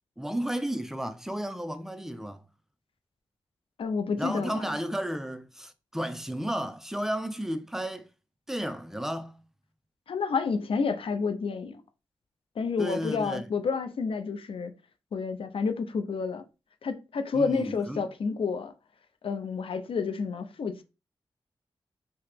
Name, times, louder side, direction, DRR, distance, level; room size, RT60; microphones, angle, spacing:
voice 1, 0.2-2.4 4.2-8.1 8.5-9.4 12.8-13.4 17.3-18.1, right 1 dB, 5° right, 0.5 m, -33 dB
voice 2, 3.8-4.6 10.1-11.8 12.6-14.7 15.1-16.4 16.8-18.7 19.2-20.8, left 5 dB, 70° left, 0.5 m, -29 dB
3.0 x 2.8 x 3.3 m
cardioid pair, 50°, 10 cm